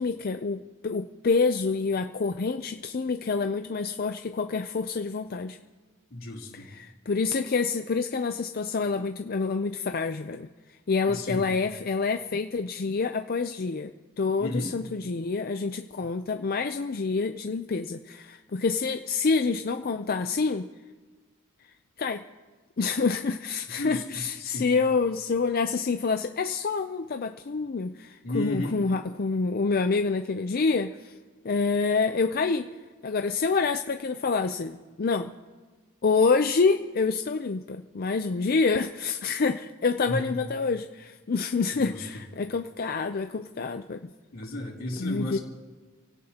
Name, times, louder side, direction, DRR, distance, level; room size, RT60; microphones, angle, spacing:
voice 1, 0.0-5.6 6.5-10.5 10.9-13.9 14.2-20.7 22.0-22.2 22.8-31.1 31.4-32.7 33.0-35.3 36.0-44.1 45.0-45.4, left 4 dB, 45° left, 7 dB, 0.5 m, -27 dB
voice 2, 6.1-6.7 11.1-11.5 14.4-14.7 23.7-24.7 28.2-28.8 40.1-40.3 41.8-42.2 44.3-45.4, left 1 dB, 75° left, -2 dB, 3.4 m, -33 dB
28.5 x 17.0 x 2.9 m, 1.3 s
head